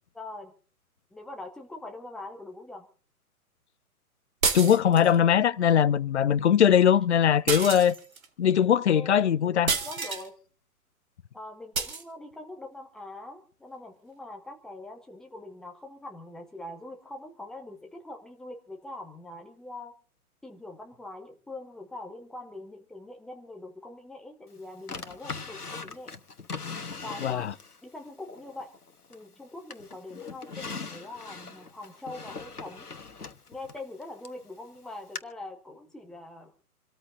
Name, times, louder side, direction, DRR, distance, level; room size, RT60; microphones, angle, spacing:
voice 1, 0.1-0.5 1.1-2.9 7.6-7.7 8.9-10.3 11.3-19.9 20.4-26.1 27.0-27.5 27.8-28.7 29.1-32.9 33.5-36.5, left 2 dB, ahead, 0.8 m, -43 dB
sound 1, 4.4-5.2 7.5-8.3 9.7-10.3 11.7-12.0, right 5 dB, 65° right, 1.9 m, -29 dB
voice 2, 4.5-7.9 8.4-9.7 27.2-27.5, left 9 dB, 50° left, 0.6 m, -21 dB
Drawer open or close, 24.9-27.8 28.3-29.3 29.7-34.4 35.2-35.3, left 4 dB, 85° left, 1.3 m, -40 dB
27.5 x 13.5 x 2.6 m
figure-of-eight pair, 125°, 45 cm